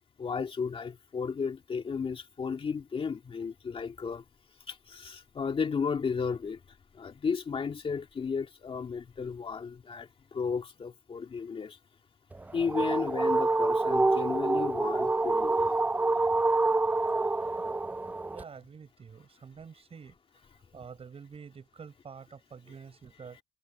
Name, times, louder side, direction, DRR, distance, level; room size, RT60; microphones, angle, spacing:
voice 1, 0.2-4.2 4.7-11.8 12.5-15.9 16.2-16.4 17.0-17.6 23.3-23.4, left 5 dB, 35° left, 2.3 m, -34 dB
sound 1, 12.3-18.4, right 2 dB, 10° right, 0.4 m, -27 dB
voice 2, 18.3-20.2 20.5-23.4, right 6 dB, 35° right, 6.8 m, -48 dB
cardioid pair, 110°, 17 cm